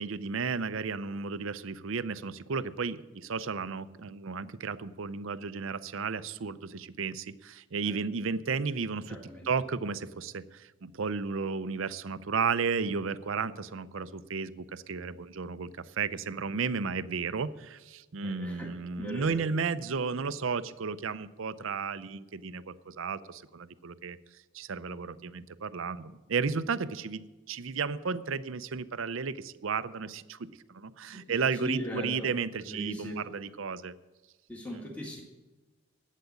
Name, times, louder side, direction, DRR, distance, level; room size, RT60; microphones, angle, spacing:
voice 1, 0.0-9.2 9.5-24.2 24.5-33.9, right 5 dB, 70° right, 14 dB, 0.6 m, -33 dB
voice 2, 9.1-9.5 18.2-18.7 19.0-19.5 31.1-32.3 32.6-33.2 34.5-35.2, equal, 5° left, -2 dB, 1.8 m, -39 dB
12.0 x 8.4 x 8.2 m, 1.2 s
head